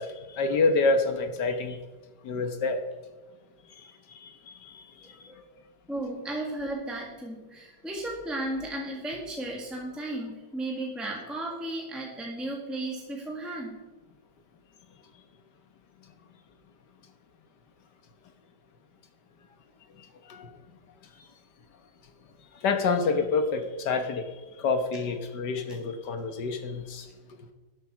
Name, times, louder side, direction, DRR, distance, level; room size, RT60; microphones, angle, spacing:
voice 1, 0.0-1.8 2.2-2.8 3.8-3.9 4.1-4.8 20.3-20.5 22.6-24.3 24.6-27.1, left 4 dB, 75° left, 7 dB, 1.7 m, -27 dB
voice 2, 5.9-13.8, right 1 dB, ahead, -2 dB, 1.6 m, -34 dB
12.0 x 8.5 x 6.1 m, 1.3 s
omnidirectional pair, 1.9 m